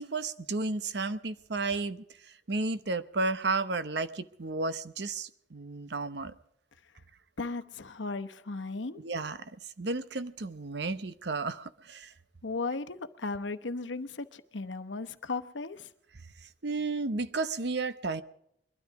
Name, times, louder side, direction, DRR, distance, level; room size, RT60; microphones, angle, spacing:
voice 1, 0.0-2.0 2.5-6.3 9.0-9.5 9.8-12.1 16.6-18.2, right 3 dB, 65° right, 13 dB, 0.9 m, -32 dB
voice 2, 7.4-9.0 12.4-15.9, left 3 dB, 85° left, 11 dB, 1.0 m, -36 dB
22.0 x 12.5 x 4.7 m, 0.75 s
head